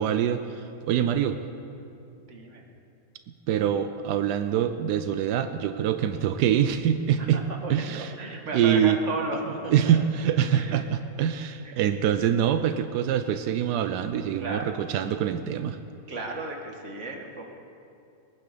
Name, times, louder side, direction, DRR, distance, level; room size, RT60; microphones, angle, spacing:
voice 1, 0.0-1.4 3.5-7.4 7.7-8.1 8.5-9.0 9.7-15.8, right 9 dB, 80° right, 9 dB, 0.9 m, -25 dB
voice 2, 2.3-2.6 7.2-10.0 10.5-10.8 11.6-11.8 14.4-14.7 16.1-17.4, right 2 dB, 35° right, 1 dB, 1.8 m, -34 dB
21.0 x 9.8 x 6.7 m, 2.6 s
omnidirectional pair, 2.4 m